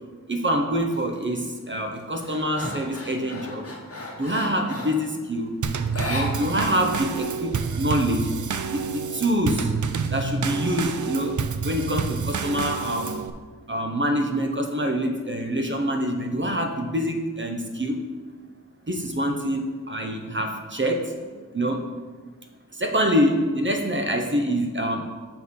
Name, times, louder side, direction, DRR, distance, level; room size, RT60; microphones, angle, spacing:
voice 1, 0.3-3.7 4.2-5.6 6.1-8.3 8.7-9.7 10.1-11.3 11.6-13.2 13.7-18.0 18.9-21.0 21.5-21.8 22.8-25.0, equal, 35° right, 3 dB, 0.8 m, -25 dB
sound 1, 0.9-1.3 1.7-5.1 5.9-6.8 7.1-7.2 7.6-8.5, left 1 dB, 45° left, 1.2 m, -35 dB
Drum kit / Snare drum / Bass drum, 5.6-13.3, right 6 dB, 60° right, 0.5 m, -28 dB
6.3 x 4.5 x 5.4 m, 1.4 s
wide cardioid pair, 50°, 34 cm